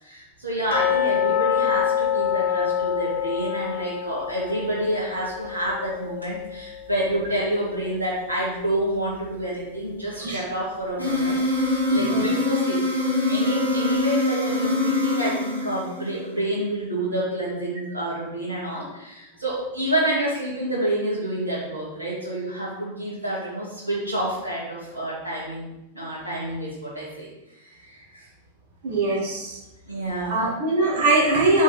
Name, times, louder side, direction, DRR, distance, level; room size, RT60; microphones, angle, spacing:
voice 1, 0.0-12.8 13.3-27.3 27.6-28.3 29.9-30.5, right 1 dB, 80° right, -7 dB, 2.2 m, -28 dB
sound 1, 0.7-7.6 7.8-7.9 8.4-8.5 9.1-9.2, left 9 dB, 65° left, 1.1 m, -26 dB
sound 2, 11.0-16.3, left 2 dB, 85° left, 2.0 m, -24 dB
voice 2, 11.9-12.3 28.8-29.6 30.3-31.6, right 2 dB, 55° right, -6 dB, 1.8 m, -21 dB
6.0 x 5.2 x 4.5 m, 0.95 s
figure-of-eight pair, 90°, 0 cm